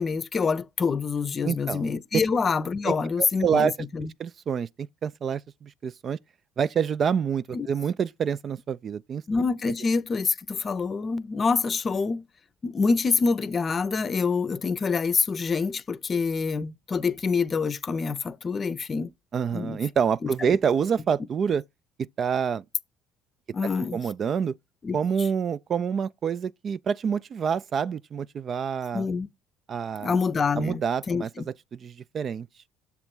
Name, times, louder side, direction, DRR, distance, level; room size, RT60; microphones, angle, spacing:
voice 1, 0.0-4.1 7.5-7.7 9.3-12.3 12.6-19.1 19.5-19.8 20.2-20.6 23.5-24.0 24.8-25.0 28.9-29.3 30.0-30.8 31.1-31.4, left 5 dB, 35° left, 0.6 m, -26 dB
voice 2, 1.4-1.9 2.8-3.7 4.2-6.2 6.6-9.2 19.3-21.6 22.2-22.6 23.9-24.6 24.9-29.1 29.7-30.2 30.6-31.5 31.8-32.5, right 7 dB, 45° right, 0.3 m, -27 dB
7.1 x 3.2 x 6.0 m
supercardioid pair, 90°, 0 cm